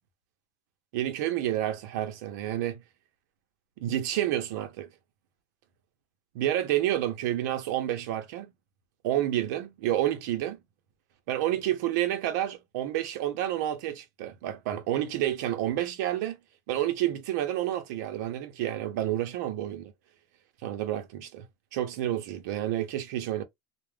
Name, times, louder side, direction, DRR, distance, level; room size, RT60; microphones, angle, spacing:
voice 1, 0.9-2.8 3.8-4.9 6.3-8.5 9.0-10.6 11.3-16.4 16.7-19.9 20.6-21.5 21.7-23.4, right 12 dB, 85° right, 0.7 m, -29 dB
2.4 x 2.1 x 3.2 m
cardioid pair, 150°, 9 cm